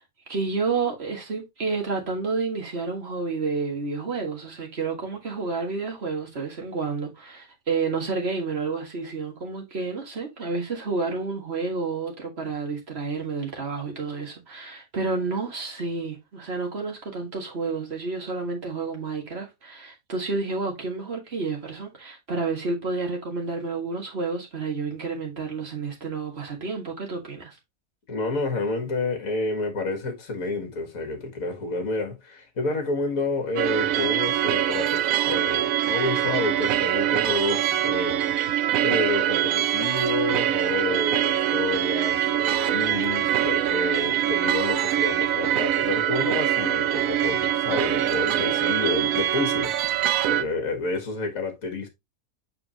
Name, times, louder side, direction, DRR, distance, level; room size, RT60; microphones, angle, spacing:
voice 1, 0.3-27.6, right 4 dB, 40° right, 1.9 m, -30 dB
voice 2, 28.1-38.2 38.8-50.0 50.3-51.9, left 3 dB, 60° left, 1.9 m, -29 dB
sound 1, 33.6-50.4, right 11 dB, 70° right, 0.9 m, -24 dB
6.8 x 4.9 x 3.0 m
omnidirectional pair, 1.6 m